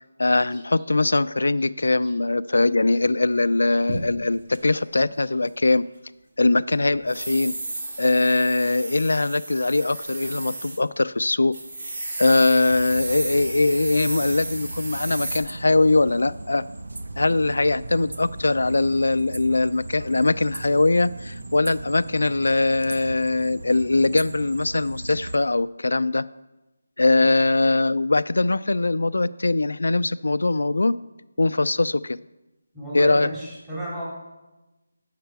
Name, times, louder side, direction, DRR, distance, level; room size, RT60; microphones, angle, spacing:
voice 1, 0.2-5.8 6.4-7.5 8.0-11.5 12.2-16.6 17.2-26.2 27.0-30.9 31.4-32.2 32.9-33.3, left 2 dB, 80° left, 16 dB, 0.3 m, -21 dB
sound 1, 3.5-4.6 6.7-10.8 11.1-11.2 11.5-15.4, right 2 dB, 50° right, 1.7 m, -33 dB
sound 2, 12.7-25.3, right 2 dB, 80° right, 0.6 m, -37 dB
voice 2, 32.7-34.0, right 1 dB, 15° right, -8 dB, 3.1 m, -33 dB
9.1 x 6.6 x 4.7 m, 1.0 s
figure-of-eight pair, 165°, 0 cm